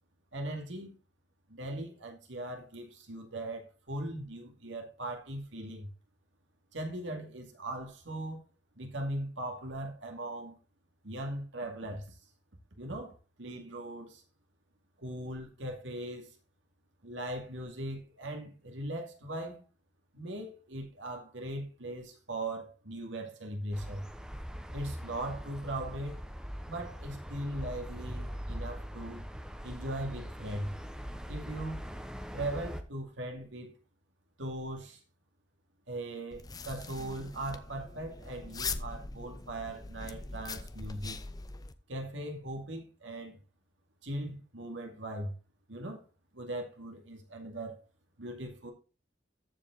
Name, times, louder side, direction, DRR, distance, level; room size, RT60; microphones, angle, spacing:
voice 1, 0.3-1.0 1.5-5.9 6.7-8.4 8.8-10.6 11.0-12.2 12.8-14.2 15.0-16.3 17.0-19.6 20.1-24.0 24.7-26.2 26.7-29.2 29.6-30.7 31.3-31.8 32.3-33.7 34.4-35.0 35.9-41.2 41.9-43.4 44.0-45.3 45.7-46.0 46.3-47.8 48.2-48.7, right 1 dB, 90° right, 2.4 m, -39 dB
sound 1, 23.7-32.8, equal, 5° right, 0.9 m, -42 dB
sound 2, 36.3-41.7, left 4 dB, 20° left, 0.6 m, -41 dB
14.0 x 5.0 x 4.0 m
head